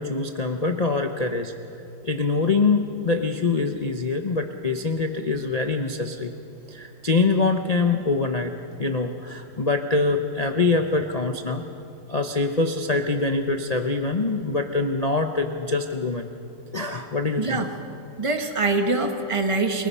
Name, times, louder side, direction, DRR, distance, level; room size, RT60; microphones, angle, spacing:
voice 1, 0.0-1.5 2.0-6.3 6.7-8.5 8.8-11.6 12.1-16.3 16.7-17.6, left 3 dB, 90° left, 4 dB, 0.3 m, -24 dB
voice 2, 18.2-19.9, right 3 dB, 20° right, 5 dB, 1.3 m, -24 dB
30.0 x 19.0 x 5.6 m, 2.8 s
omnidirectional pair, 2.2 m